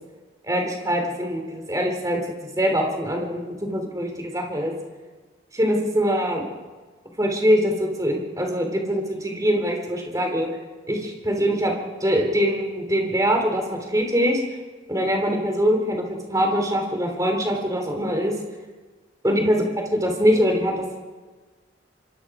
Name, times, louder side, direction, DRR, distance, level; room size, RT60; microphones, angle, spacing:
voice 1, 0.4-2.2 2.6-4.7 5.5-6.5 7.2-10.5 10.9-11.7 12.0-14.4 14.9-18.3 19.2-21.0, equal, 20° right, 2 dB, 3.6 m, -23 dB
26.0 x 24.0 x 5.0 m, 1.4 s
head